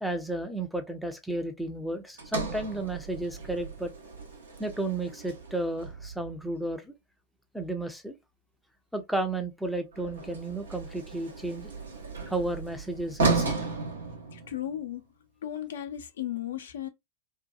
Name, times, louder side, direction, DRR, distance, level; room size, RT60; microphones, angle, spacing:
voice 1, 0.0-3.9 4.6-6.9 7.5-8.2 8.9-11.7 12.3-13.6, right 2 dB, ahead, 0.5 m, -33 dB
Sliding door, 2.2-6.4 9.9-14.9, right 3 dB, 75° right, 0.7 m, -34 dB
voice 2, 14.3-15.0 15.4-16.9, left 11 dB, 70° left, 0.4 m, -35 dB
2.6 x 2.2 x 2.4 m
figure-of-eight pair, 100°, 0 cm